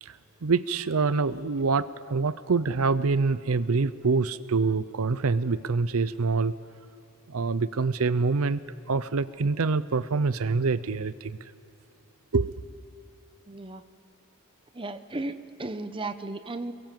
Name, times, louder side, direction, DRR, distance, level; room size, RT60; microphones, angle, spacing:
voice 1, 0.0-6.6 7.3-8.6 8.9-11.5 12.3-12.7, right 4 dB, 70° right, 15 dB, 0.6 m, -26 dB
voice 2, 13.5-13.8 14.7-16.7, right 2 dB, 25° right, 9 dB, 0.9 m, -35 dB
29.0 x 22.5 x 7.6 m, 2.5 s
head